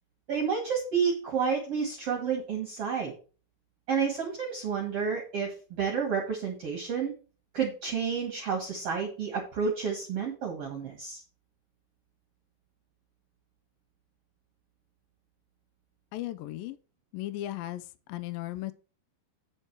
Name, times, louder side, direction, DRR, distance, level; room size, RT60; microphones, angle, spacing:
voice 1, 0.3-3.1 3.9-7.1 7.5-11.2, right 6 dB, 55° right, 1.9 m, -30 dB
voice 2, 16.1-16.8 17.1-17.8 18.1-18.7, left 15 dB, 85° left, 2.1 m, -36 dB
9.0 x 4.6 x 5.8 m
omnidirectional pair, 4.6 m